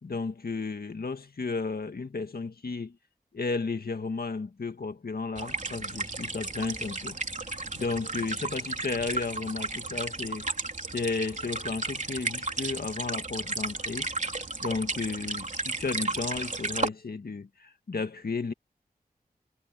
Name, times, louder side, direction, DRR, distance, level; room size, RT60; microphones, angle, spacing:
voice 1, 0.0-3.0 3.3-7.2 7.8-10.4 10.9-14.1 14.6-18.5, left 4 dB, 70° left, 2.0 m, -33 dB
sound 1, 5.4-16.9, right 3 dB, 50° right, 3.5 m, -34 dB
wide cardioid pair, 80°, 16 cm